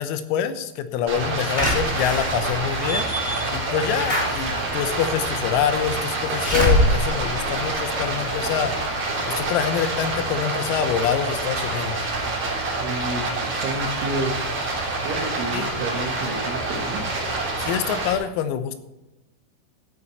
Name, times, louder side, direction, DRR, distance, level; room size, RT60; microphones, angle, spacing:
voice 1, 0.0-3.1 3.5-8.7 9.4-12.1 15.5-15.7 17.6-18.8, left 9 dB, 85° left, 10 dB, 3.7 m, -25 dB
Stream, 1.1-18.1, right 2 dB, 35° right, 3.8 m, -27 dB
Slam / Alarm, 1.5-8.4 8.8-8.9 9.2-9.3, equal, 20° left, 1.6 m, -25 dB
voice 2, 12.8-14.3 15.0-17.0, right 1 dB, 70° right, 2 dB, 4.0 m, -30 dB
15.5 x 10.0 x 4.2 m, 0.97 s
omnidirectional pair, 6.0 m